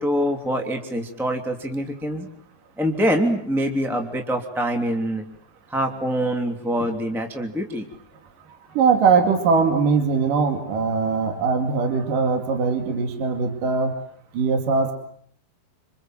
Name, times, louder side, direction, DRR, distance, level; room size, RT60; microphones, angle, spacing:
voice 1, 0.0-2.3 2.8-5.2 5.7-7.9, equal, ahead, 3 dB, 2.3 m, -24 dB
voice 2, 8.8-13.9 14.3-14.9, right 5 dB, 65° right, 5 dB, 4.0 m, -21 dB
28.0 x 27.0 x 7.8 m, 0.64 s
omnidirectional pair, 4.3 m